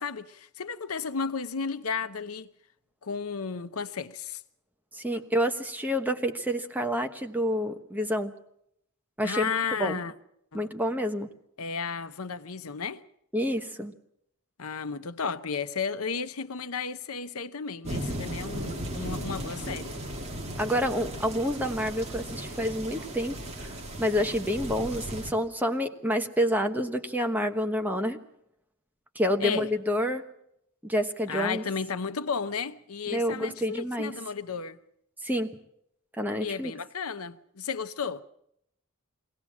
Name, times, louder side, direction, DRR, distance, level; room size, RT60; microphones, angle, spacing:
voice 1, 0.0-2.5 3.0-4.4 9.2-10.1 10.5-10.7 11.6-13.0 14.6-19.9 29.4-29.7 31.3-34.8 36.4-38.2, left 5 dB, 80° left, 0.9 m, -33 dB
voice 2, 4.9-8.3 9.2-9.5 9.8-10.0 10.5-11.3 13.3-13.9 20.6-23.3 24.0-28.2 29.1-30.2 30.8-31.6 33.1-34.1 35.2-35.5 36.2-36.7, equal, 10° right, 1.2 m, -28 dB
sound 1, 17.8-25.3, right 1 dB, 30° right, 2.2 m, -36 dB
22.5 x 17.0 x 7.3 m
head